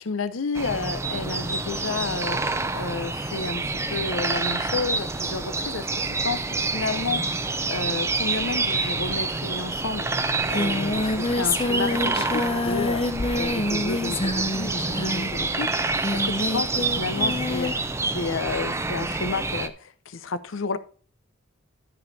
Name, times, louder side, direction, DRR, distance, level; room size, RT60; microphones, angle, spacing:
voice 1, 0.0-20.8, left 4 dB, 80° left, 0.7 m, -31 dB
sound 1, 0.5-19.7, right 3 dB, 15° right, 0.5 m, -28 dB
Singing, 9.8-9.9 10.1-17.8, left 2 dB, 25° left, 0.7 m, -27 dB
12.5 x 5.3 x 4.1 m
head